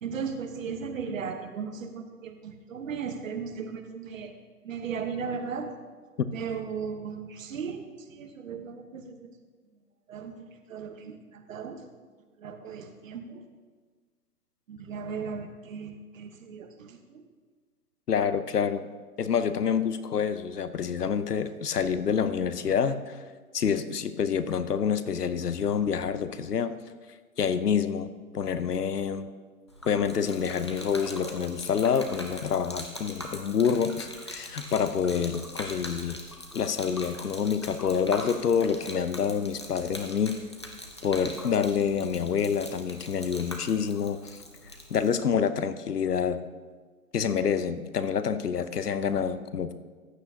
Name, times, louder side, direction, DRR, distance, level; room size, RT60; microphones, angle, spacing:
voice 1, 0.0-4.3 4.6-5.7 6.3-9.3 10.1-11.9 12.4-13.5 14.7-17.3, right 6 dB, 60° right, 7 dB, 1.2 m, -36 dB
voice 2, 18.1-18.9 19.2-23.2 23.5-26.8 27.4-29.3 29.8-36.2 36.5-40.4 41.0-44.4 44.9-46.4 47.1-49.8, left 7 dB, 85° left, 12 dB, 0.8 m, -27 dB
Gurgling / Liquid, 29.7-45.1, left 1 dB, 20° left, 0.3 m, -42 dB
14.5 x 9.0 x 2.8 m, 1.5 s
figure-of-eight pair, 130°, 45 cm